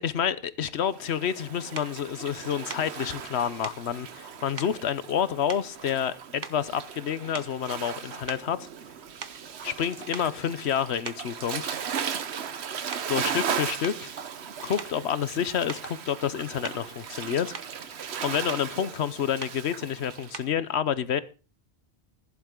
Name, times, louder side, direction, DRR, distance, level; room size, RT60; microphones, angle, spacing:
voice 1, 0.0-8.7 9.6-11.8 13.1-14.1 14.6-17.5 18.2-21.2, left 8 dB, 75° left, 1.1 m, -29 dB
Waves surf, 0.9-20.4, right 7 dB, 75° right, 1.2 m, -37 dB
sound 1, 1.7-2.0 2.7-2.9 3.6-3.9 4.6-4.8 5.5-6.1 6.4-6.8 7.3-7.7 8.3-9.8 10.1-10.3 11.0-11.3 12.0-12.2 12.7-13.2 13.8-14.0 14.8-15.0 15.7-15.9 16.6-16.9 17.3-17.8 18.5-18.7 19.4-19.6 20.3-20.6, right 5 dB, 45° right, 1.0 m, -41 dB
15.5 x 11.0 x 3.8 m
omnidirectional pair, 1.1 m